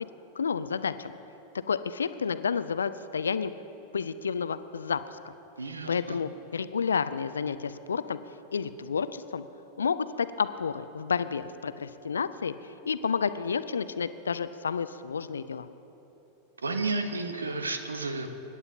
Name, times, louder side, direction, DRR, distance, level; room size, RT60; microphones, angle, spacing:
voice 1, 0.4-1.1 1.7-3.5 3.9-5.2 5.9-8.2 8.5-9.4 9.8-12.5 12.8-15.7, left 6 dB, 70° left, 13 dB, 0.4 m, -30 dB
voice 2, 5.6-6.2 16.6-18.3, right 3 dB, 75° right, 7 dB, 1.1 m, -32 dB
25.0 x 11.0 x 2.8 m, 3.0 s
figure-of-eight pair, 90°, 0 cm